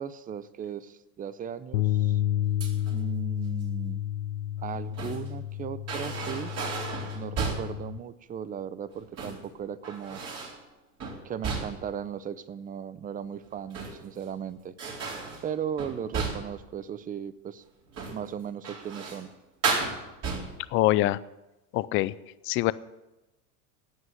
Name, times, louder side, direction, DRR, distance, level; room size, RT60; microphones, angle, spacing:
voice 1, 0.0-2.2 2.9-4.0 4.6-6.5 7.1-10.2 11.2-14.7 15.4-17.6 18.1-19.3, right 8 dB, 20° right, 16 dB, 0.6 m, -37 dB
sound 1, 1.7-8.0, left 12 dB, 75° left, 0.6 m, -30 dB
sound 2, 2.6-3.0 4.6-5.3 5.9-7.8 8.9-9.5 9.8-10.6 11.0-12.0 13.5-14.2 14.8-16.6 17.9-18.3 18.6-19.3 19.6-20.7, right 4 dB, 35° right, 4.3 m, -34 dB
voice 2, 20.7-21.2 21.7-22.1 22.5-22.7, left 17 dB, 30° left, 17 dB, 0.4 m, -24 dB
17.0 x 6.2 x 9.3 m, 0.99 s
supercardioid pair, 125°, 45 cm